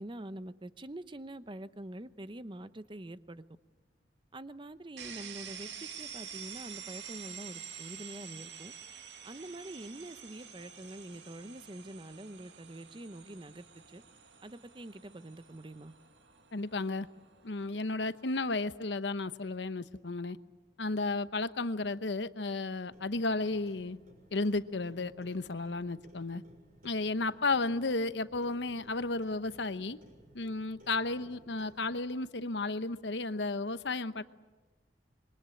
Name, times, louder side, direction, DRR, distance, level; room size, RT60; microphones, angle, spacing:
voice 1, 0.0-3.4 4.3-8.7 9.2-14.0 14.4-15.9, right 1 dB, 30° right, 13 dB, 0.8 m, -45 dB
sound 1, 5.0-18.7, right 7 dB, 90° right, 2.3 m, -48 dB
voice 2, 16.5-17.1 17.4-20.4 20.8-24.0 24.3-26.4 26.8-30.0 30.3-34.2, left 3 dB, 80° left, 13 dB, 1.0 m, -33 dB
Clock, 22.9-32.0, equal, 50° right, 6.6 m, -59 dB
27.0 x 23.5 x 8.5 m, 1.2 s
head